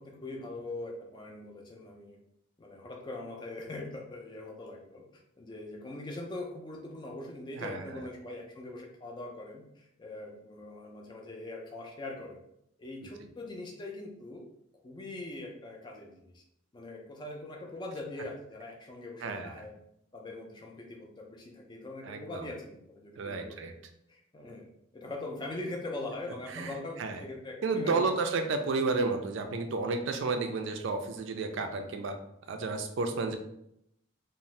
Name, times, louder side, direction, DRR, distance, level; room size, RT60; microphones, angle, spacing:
voice 1, 0.0-2.2 2.6-12.4 12.8-14.5 14.8-16.4 16.7-19.8 20.1-23.6 24.1-24.7 24.9-28.2, left 2 dB, 20° left, 0 dB, 0.4 m, -42 dB
voice 2, 7.5-8.0 19.2-19.5 22.0-22.5 23.2-23.7 26.5-26.7 27.0-27.2 27.6-32.2 32.5-33.4, right 3 dB, 60° right, 6 dB, 0.3 m, -31 dB
2.6 x 2.0 x 3.0 m, 0.76 s
head